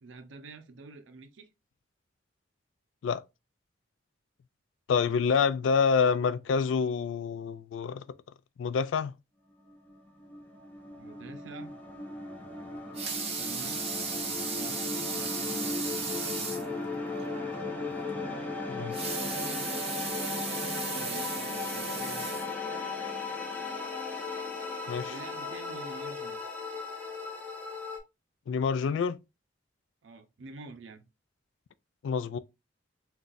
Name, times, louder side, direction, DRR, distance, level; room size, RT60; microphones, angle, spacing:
voice 1, 0.0-1.5 5.0-5.2 11.0-11.7 13.3-13.8 14.4-15.3 20.9-22.5 25.1-26.4 30.0-31.1, right 3 dB, 75° right, 0.5 m, -47 dB
voice 2, 4.9-8.0 8.6-9.1 18.7-19.0 24.9-25.1 28.5-29.2 32.0-32.4, left 6 dB, 75° left, 0.3 m, -27 dB
sound 1, 9.6-28.0, left 3 dB, 10° left, 0.7 m, -36 dB
Water tap faucet / Sink (filling or washing) / Liquid, 12.7-16.7 17.2-17.3 17.6-17.7 18.8-22.9 23.5-23.6, right 5 dB, 35° right, 0.8 m, -36 dB
3.8 x 2.3 x 2.5 m
head